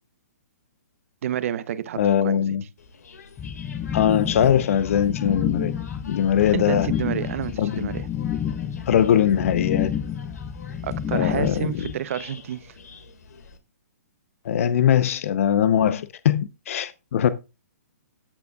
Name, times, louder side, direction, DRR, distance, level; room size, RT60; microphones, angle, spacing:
voice 1, 1.2-2.0 2.2-2.4 6.5-8.1 10.8-12.8, right 10 dB, 55° right, 0.8 m, -29 dB
voice 2, 2.0-2.6 3.9-5.7 6.0-6.9 7.6-7.9 8.9-9.9 11.1-11.9 14.4-17.3, left 9 dB, 55° left, 0.8 m, -21 dB
sound 1, 2.8-13.6, left 4 dB, 80° left, 2.0 m, -47 dB
sound 2, 3.4-11.9, left 9 dB, 15° left, 0.5 m, -29 dB
13.0 x 6.8 x 2.4 m
hypercardioid pair, 145°, 9 cm